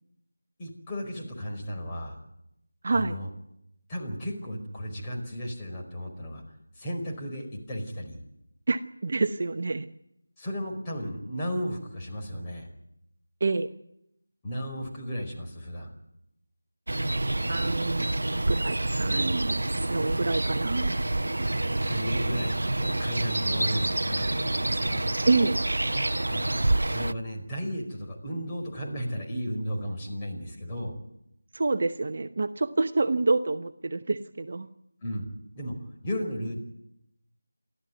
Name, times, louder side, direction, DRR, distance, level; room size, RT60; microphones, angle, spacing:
voice 1, 0.6-2.2 2.9-3.3 3.9-6.4 6.7-8.2 10.4-12.7 14.4-15.9 21.8-25.1 26.3-31.0 35.0-35.3 35.5-36.6, equal, 15° left, -1 dB, 4.7 m, -34 dB
voice 2, 2.8-3.2 8.7-9.9 13.4-13.7 17.5-18.1 18.5-21.0 25.3-25.6 31.5-34.7, right 3 dB, 40° right, 9 dB, 1.0 m, -27 dB
sound 1, 16.9-27.1, right 2 dB, 65° right, 0.8 m, -27 dB
28.5 x 13.0 x 9.3 m, 0.80 s
figure-of-eight pair, 165°, 0 cm